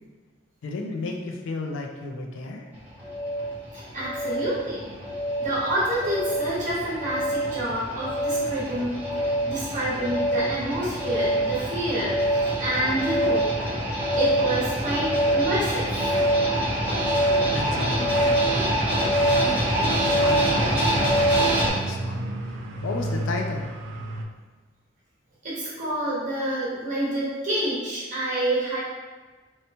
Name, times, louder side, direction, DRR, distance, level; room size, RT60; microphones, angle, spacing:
voice 1, 0.6-2.7 17.5-18.9 19.2-22.6 22.8-23.6, left 2 dB, 75° left, 2 dB, 0.4 m, -33 dB
sound 1, 2.7-21.7, right 1 dB, 10° right, 0.7 m, -25 dB
voice 2, 3.7-4.8 5.4-13.5 13.9-16.2 25.4-28.8, right 1 dB, 40° right, -8 dB, 0.9 m, -28 dB
sound 2, 18.0-24.2, right 1 dB, 70° right, 0.3 m, -34 dB
2.8 x 2.2 x 2.8 m, 1.3 s
head